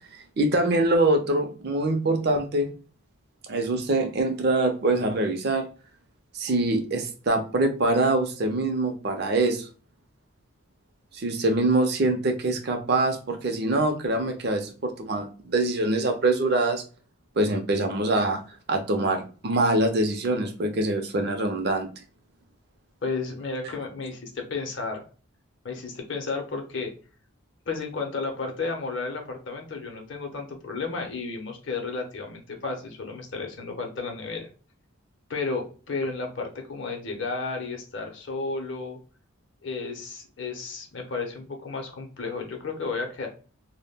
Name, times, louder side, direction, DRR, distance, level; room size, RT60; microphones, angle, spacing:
voice 1, 0.4-2.7 3.5-5.7 6.3-9.7 11.1-16.8 17.4-18.4 18.7-21.9, right 2 dB, 50° right, 5 dB, 0.5 m, -24 dB
voice 2, 23.0-25.0 25.6-26.9 27.7-34.5 35.3-39.0 39.6-43.3, left 4 dB, 60° left, 3 dB, 0.6 m, -32 dB
2.2 x 2.1 x 3.3 m, 0.38 s
head